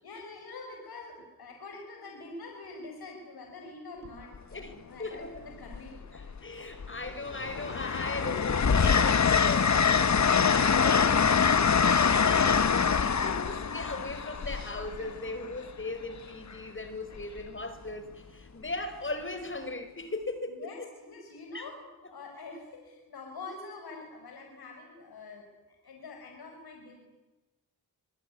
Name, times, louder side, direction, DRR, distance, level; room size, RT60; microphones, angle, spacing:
voice 1, 0.0-6.0 20.5-21.8 22.1-27.0, left 3 dB, 75° left, 2 dB, 6.1 m, -45 dB
Train, 4.0-4.4 5.7-6.4 6.8-15.6 17.2-17.4, left 6 dB, 45° left, 1.5 m, -25 dB
voice 2, 5.0-5.5 6.1-12.6 13.0-20.9 21.5-21.7, left 2 dB, 30° left, 9 dB, 5.5 m, -38 dB
26.0 x 23.0 x 9.8 m, 1.1 s
cardioid pair, 60°, 37 cm